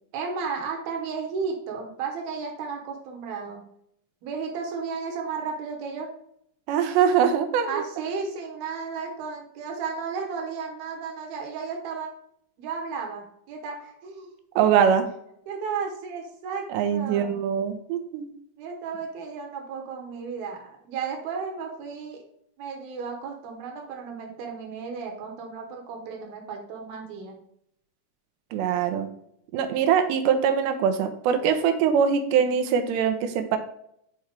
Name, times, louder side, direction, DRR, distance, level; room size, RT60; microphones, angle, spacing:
voice 1, 0.1-3.6 4.2-6.1 7.7-12.1 12.6-14.3 15.5-16.7 16.9-17.4 18.6-22.2 22.6-27.4, right 5 dB, 70° right, 1 dB, 2.7 m, -34 dB
voice 2, 6.7-7.8 14.6-15.1 16.7-18.3 28.5-29.1 29.5-33.6, right 7 dB, 85° right, 7 dB, 2.9 m, -22 dB
7.8 x 4.6 x 3.4 m, 0.73 s
omnidirectional pair, 5.0 m